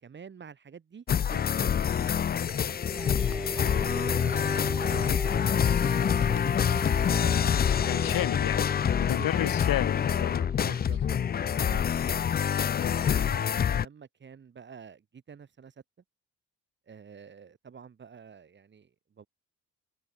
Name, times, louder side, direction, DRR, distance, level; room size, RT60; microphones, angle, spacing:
voice 1, 0.0-1.0 1.3-1.6 2.5-2.8 3.8-7.6 9.2-9.5 10.6-11.0 11.4-11.9 13.1-15.7 16.9-19.3, right 6 dB, 30° right, 1.9 m, -48 dB
sound 1, 1.1-13.8, left 8 dB, 30° left, 0.4 m, -26 dB
sound 2, 2.5-13.4, right 1 dB, 5° right, 1.1 m, -39 dB
sound 3, 3.0-5.2 5.7-7.9, left 8 dB, 45° left, 6.4 m, -47 dB
voice 2, 7.9-10.5 10.9-11.0 12.7-13.0, left 14 dB, 75° left, 1.5 m, -33 dB
cardioid pair, 165°, 35 cm